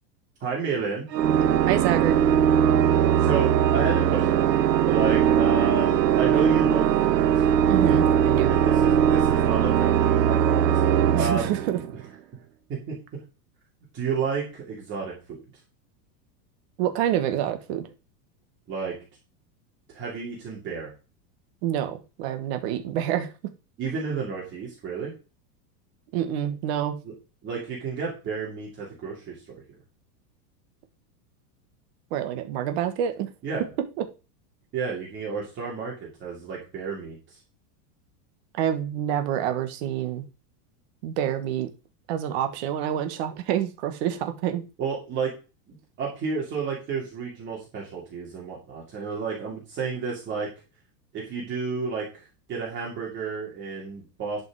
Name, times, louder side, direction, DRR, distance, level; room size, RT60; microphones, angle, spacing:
voice 1, 0.4-1.1 3.2-7.4 8.5-10.8 11.1-11.5 12.7-12.9 13.9-15.4 18.7-19.0 19.9-20.9 23.8-25.1 27.0-27.1 27.4-29.6 33.4-33.6 34.7-37.4 44.8-45.3 45.7-50.5 51.1-54.4, right 5 dB, 20° right, -3 dB, 2.8 m, -31 dB
Organ, 1.1-12.1, right 9 dB, 80° right, 1.4 m, -20 dB
voice 2, 1.6-2.2 7.7-8.5 11.1-11.8 16.8-17.9 21.6-23.3 26.1-27.0 32.1-33.3 38.5-40.2 41.0-41.7 42.1-44.6, right 10 dB, 40° right, 7 dB, 1.4 m, -27 dB
11.0 x 5.3 x 4.8 m, 0.31 s
supercardioid pair, 180°, 50 cm